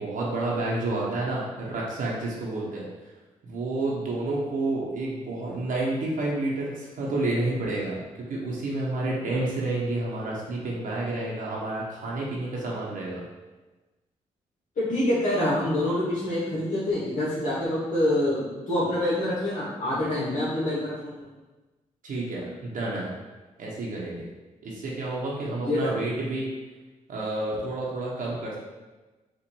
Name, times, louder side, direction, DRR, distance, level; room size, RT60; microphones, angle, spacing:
voice 1, 0.0-2.9 3.4-13.3 22.0-23.1 23.6-24.3 24.6-26.5 27.1-28.6, right 2 dB, 75° right, -4 dB, 1.0 m, -30 dB
voice 2, 14.8-21.3 25.4-26.1, left 1 dB, 70° left, -8 dB, 1.2 m, -26 dB
4.4 x 2.5 x 4.3 m, 1.2 s
cardioid pair, 70°, 14 cm